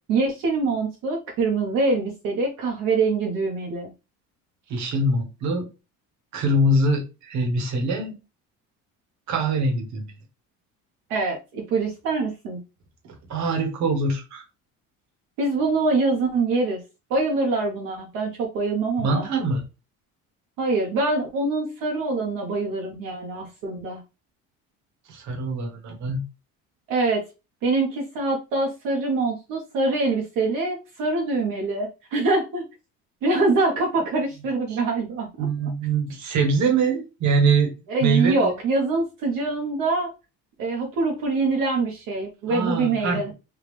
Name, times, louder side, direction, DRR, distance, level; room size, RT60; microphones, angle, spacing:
voice 1, 0.1-3.9 11.1-12.6 15.4-16.8 17.1-19.3 20.6-24.0 26.9-27.2 27.6-32.6 33.2-35.5 37.9-40.1 40.6-43.3, right 3 dB, 75° right, 1.1 m, -24 dB
voice 2, 4.7-5.7 6.3-8.2 9.3-10.1 13.3-14.4 19.0-19.6 25.1-26.2 34.7-34.8 35.4-37.7 38.0-38.5 42.5-43.3, right 2 dB, 55° right, 1.3 m, -23 dB
3.6 x 2.3 x 3.3 m
cardioid pair, 140°, 33 cm